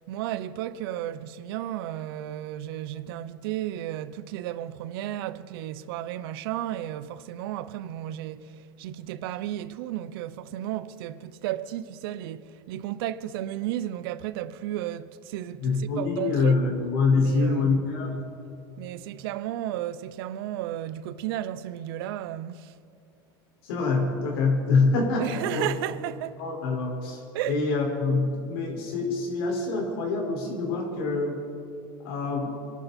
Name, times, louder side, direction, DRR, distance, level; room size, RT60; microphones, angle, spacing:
voice 1, 0.1-16.6 17.1-17.9 18.8-22.7 25.2-26.4 27.3-27.6, right 13 dB, 75° right, 0.8 m, -33 dB
voice 2, 15.6-18.2 23.6-25.3 25.5-25.7 26.4-31.4 32.0-32.5, left 4 dB, 80° left, 5.5 m, -25 dB
27.0 x 12.0 x 4.4 m
supercardioid pair, 115°, 12 cm